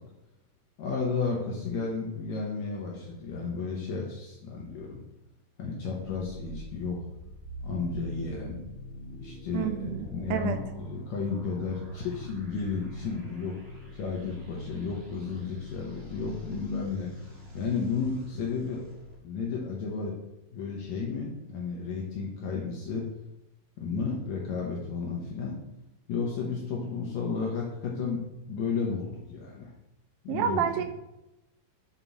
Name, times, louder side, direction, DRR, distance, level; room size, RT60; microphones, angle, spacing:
voice 1, 0.8-5.0 5.6-7.1 7.6-8.6 9.2-13.6 13.9-18.8 19.2-20.2 20.5-23.0 23.8-25.6 26.1-29.7 30.2-30.6, left 5 dB, 70° left, -2 dB, 1.8 m, -33 dB
sound 1, 5.9-19.1, left 1 dB, 60° right, 0.6 m, -45 dB
voice 2, 9.5-10.6 30.3-30.8, right 8 dB, 80° right, 8 dB, 2.3 m, -29 dB
7.3 x 3.5 x 4.0 m, 0.93 s
omnidirectional pair, 4.2 m